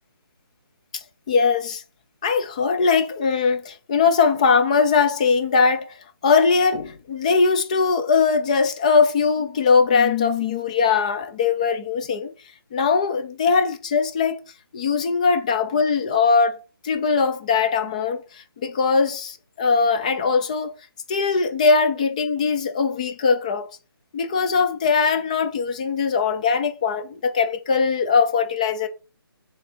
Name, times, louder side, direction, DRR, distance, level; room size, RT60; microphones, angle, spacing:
voice 1, 0.9-1.8 2.2-6.0 6.2-12.3 12.7-14.4 14.7-16.6 16.8-20.7 21.1-23.7 24.1-28.9, left 5 dB, 20° left, 0.4 m, -20 dB
6.5 x 3.6 x 4.4 m
hypercardioid pair, 160°, 13 cm